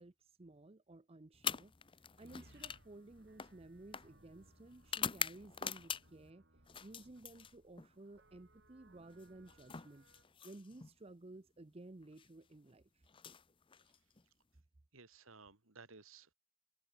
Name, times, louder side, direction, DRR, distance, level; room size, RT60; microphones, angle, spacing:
voice 1, 0.0-1.7 2.2-6.4 6.8-10.0 10.4-13.0, right 2 dB, 25° right, 0.6 m, -55 dB
sound 1, 1.3-6.3 6.7-7.9 9.1-10.9 12.0-12.3 13.1-14.2, left 7 dB, 25° left, 0.6 m, -44 dB
sound 2, 2.2-10.2, right 1 dB, 55° right, 6.8 m, -67 dB
voice 2, 14.9-16.3, right 4 dB, 70° right, 2.5 m, -57 dB
head